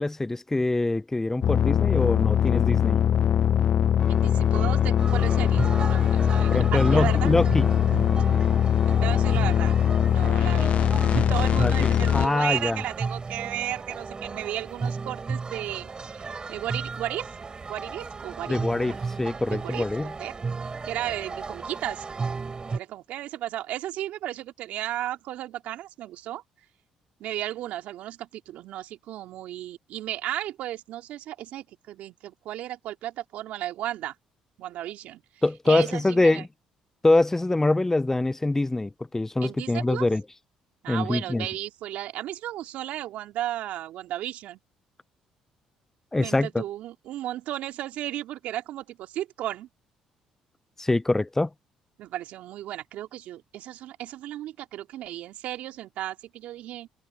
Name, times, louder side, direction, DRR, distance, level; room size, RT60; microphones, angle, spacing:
voice 1, 0.0-3.0 6.5-7.7 11.6-12.8 18.5-20.1 35.4-36.5 37.0-40.2 40.9-41.5 46.1-46.6 50.8-51.5, left 2 dB, 15° left, 0.7 m, -24 dB
sound 1, 1.4-12.3, left 9 dB, 55° left, 0.5 m, -22 dB
sound 2, 4.0-9.3, right 1 dB, 10° right, 5.1 m, -41 dB
voice 2, 4.1-7.3 9.0-17.3 17.7-18.9 19.5-19.8 20.2-20.3 20.8-22.1 22.7-26.4 27.2-34.1 34.6-35.2 35.7-36.4 39.4-40.0 40.8-44.6 46.2-49.7 52.0-56.9, right 13 dB, 70° right, 3.2 m, -34 dB
sound 3, 5.0-22.8, right 4 dB, 35° right, 6.7 m, -34 dB
hypercardioid pair, 55°, 3 cm